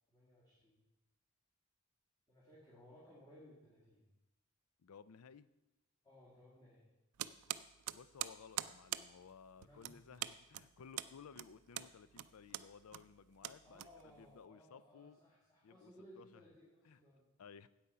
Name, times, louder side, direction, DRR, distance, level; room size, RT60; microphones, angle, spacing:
voice 1, 0.1-0.8 2.3-4.1 6.0-6.8 9.5-10.1 13.6-17.3, equal, 20° left, -7 dB, 2.2 m, -61 dB
voice 2, 4.8-5.5 7.9-15.2 15.6-16.4 16.8-17.0 17.4-17.7, left 6 dB, 75° left, 16 dB, 0.4 m, -58 dB
sound 1, 7.2-14.4, right 13 dB, 85° right, 0.4 m, -45 dB
8.6 x 8.2 x 5.6 m, 1.0 s
head